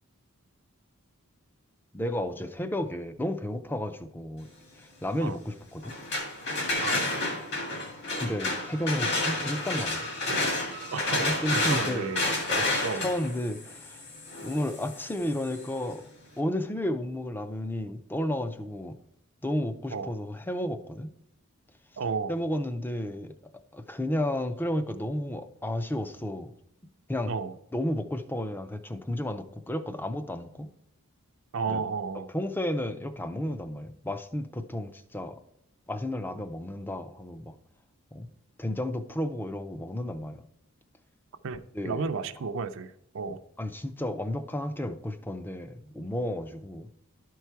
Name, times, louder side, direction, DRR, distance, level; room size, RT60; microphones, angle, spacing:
voice 1, 1.9-4.5 4.8-5.9 8.2-10.0 11.2-12.1 12.6-14.0 14.4-16.0 16.4-19.0 19.4-21.1 22.3-23.3 23.7-26.5 27.1-27.3 27.7-30.7 31.7-31.8 32.3-35.4 35.9-37.5 38.1-38.3 38.6-40.5 41.7-42.1 43.3-47.1, left 1 dB, 10° left, 10 dB, 0.4 m, -32 dB
sound 1, 5.8-15.7, left 2 dB, 50° left, 1.9 m, -30 dB
voice 2, 10.9-12.2 12.8-13.1 19.9-20.1 22.0-22.3 27.3-27.5 31.5-32.3 41.4-43.4, right 5 dB, 60° right, 9 dB, 0.4 m, -32 dB
11.5 x 4.6 x 4.5 m, 0.76 s
head